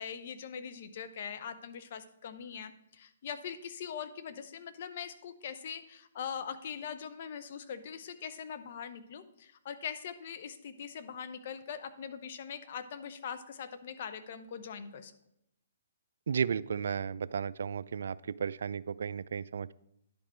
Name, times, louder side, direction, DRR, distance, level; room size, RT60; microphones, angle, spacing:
voice 1, 0.0-15.1, left 7 dB, 50° left, 11 dB, 0.8 m, -42 dB
voice 2, 16.3-19.7, right 6 dB, 70° right, 18 dB, 0.3 m, -34 dB
10.5 x 5.2 x 4.4 m, 0.79 s
hypercardioid pair, 145°, 0 cm